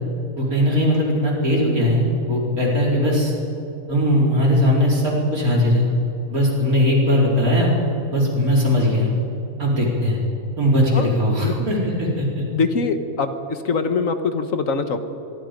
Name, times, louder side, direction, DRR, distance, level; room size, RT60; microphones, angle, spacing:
voice 1, 0.4-3.3 3.9-5.9 6.3-7.7 8.1-9.1 9.6-10.2 10.6-12.4, left 1 dB, 90° right, -3 dB, 4.8 m, -19 dB
voice 2, 12.5-15.0, left 4 dB, 65° left, 8 dB, 1.7 m, -23 dB
24.0 x 23.5 x 5.2 m, 2.8 s
omnidirectional pair, 1.5 m